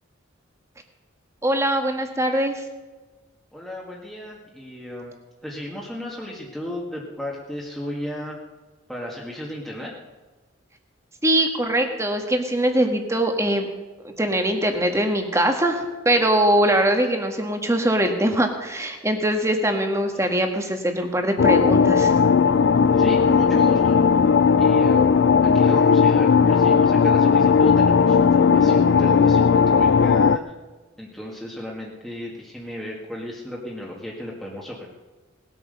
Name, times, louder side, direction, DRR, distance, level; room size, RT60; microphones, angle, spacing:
voice 1, 1.4-2.6 11.2-13.7 14.2-22.2, right 1 dB, 15° right, 4 dB, 1.5 m, -22 dB
voice 2, 3.5-5.1 5.4-8.4 8.9-9.9 20.1-20.3 22.9-24.0 24.6-30.4 31.0-34.9, left 1 dB, ahead, -4 dB, 1.8 m, -34 dB
sound 1, 21.4-30.4, left 6 dB, 60° left, 0.4 m, -17 dB
19.0 x 9.1 x 6.7 m, 1.2 s
head